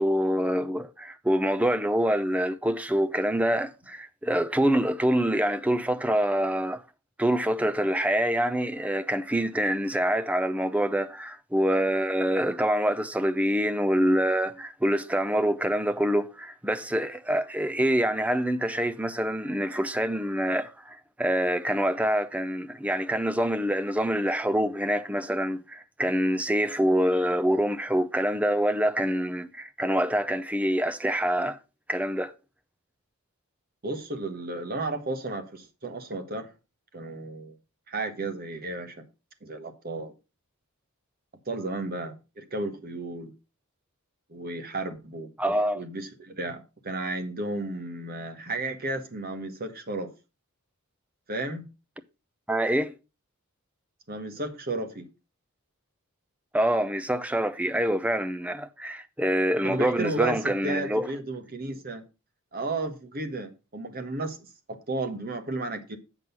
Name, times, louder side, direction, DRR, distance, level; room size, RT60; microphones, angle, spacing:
voice 1, 0.0-6.8 7.2-31.6 31.9-32.3 45.4-45.8 52.5-52.9 56.5-61.1, equal, 5° right, 0.6 m, -26 dB
voice 2, 33.8-36.5 36.9-37.6 37.9-39.0 39.4-40.1 41.5-43.3 44.3-45.3 45.7-50.1 51.3-51.7 54.1-55.1 59.6-62.0 62.5-66.0, right 2 dB, 45° right, 1.4 m, -33 dB
7.8 x 6.2 x 5.4 m
head